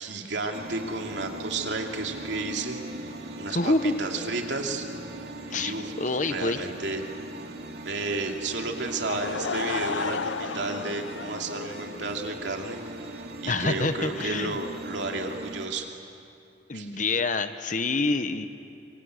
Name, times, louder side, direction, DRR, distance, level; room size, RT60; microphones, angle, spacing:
voice 1, 0.0-4.9 5.5-5.9 6.2-7.0 7.8-15.9 16.7-17.0, right 3 dB, 75° right, 2 dB, 2.7 m, -32 dB
sound 1, 0.5-15.7, right 1 dB, 60° right, 2.6 m, -39 dB
voice 2, 3.5-3.9 5.5-6.6 13.5-14.6 16.7-18.5, left 3 dB, 45° left, 10 dB, 1.0 m, -27 dB
Laughter / Crowd, 8.8-12.4, left 5 dB, 90° left, 0.6 m, -33 dB
26.5 x 24.0 x 8.1 m, 2.7 s
head